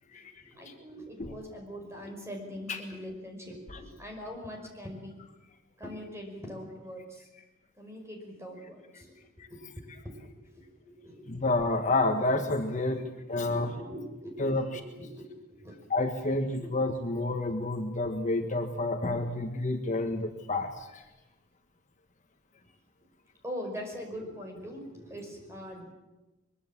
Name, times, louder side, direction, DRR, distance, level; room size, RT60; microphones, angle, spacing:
voice 1, 0.1-5.2 5.8-7.2 7.8-9.1 9.5-12.0 12.7-15.8 16.6-16.7 19.8-20.0 23.4-25.9, equal, 15° right, 2 dB, 5.4 m, -43 dB
voice 2, 11.3-13.0 13.3-13.7 14.4-14.6 15.9-21.0, left 2 dB, 35° left, 5 dB, 1.5 m, -29 dB
23.0 x 22.5 x 7.4 m, 1.1 s
head